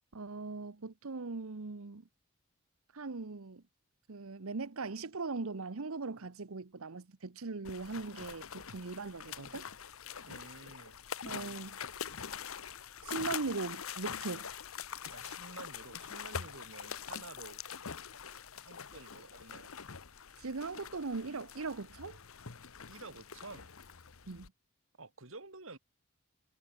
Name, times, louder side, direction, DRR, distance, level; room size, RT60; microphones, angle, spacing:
voice 1, 0.1-2.1 2.9-3.6 4.1-9.7 11.2-11.8 13.0-14.5 20.4-22.2 24.3-24.5, right 3 dB, 85° right, 1.0 m, -40 dB
sound 1, 7.6-24.5, left 7 dB, 85° left, 1.2 m, -44 dB
voice 2, 10.2-11.0 15.0-17.6 18.6-19.7 22.9-23.7 25.0-25.8, right 3 dB, 70° right, 2.7 m, -50 dB
head